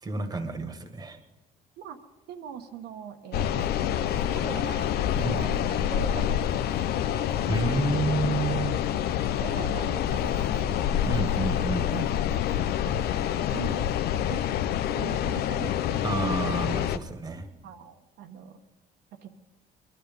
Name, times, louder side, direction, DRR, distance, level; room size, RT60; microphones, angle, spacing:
voice 1, 0.0-1.2 5.1-5.4 7.5-8.8 11.1-12.2 16.0-17.5, right 3 dB, 20° right, 8 dB, 1.7 m, -30 dB
voice 2, 2.3-4.9 5.2-7.4 7.6-7.9 8.3-8.4 9.2-10.7 12.8-13.9 14.3-14.6 14.9-16.3 17.6-18.6 19.2-19.4, right 8 dB, 80° right, 4 dB, 1.3 m, -42 dB
sound 1, 3.3-17.0, left 10 dB, 70° left, 0.7 m, -27 dB
21.0 x 12.0 x 5.4 m, 1.1 s
cardioid pair, 110°, 17 cm